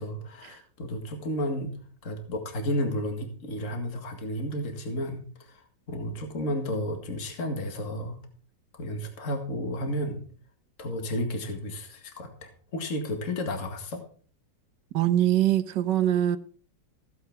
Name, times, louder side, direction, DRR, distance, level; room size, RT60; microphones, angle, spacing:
voice 1, 0.0-1.8 2.0-8.2 8.8-10.2 10.8-14.0, left 1 dB, 45° left, 2.3 m, -32 dB
voice 2, 14.9-16.4, right 12 dB, 75° right, 1.5 m, -23 dB
16.0 x 7.9 x 4.6 m
omnidirectional pair, 2.0 m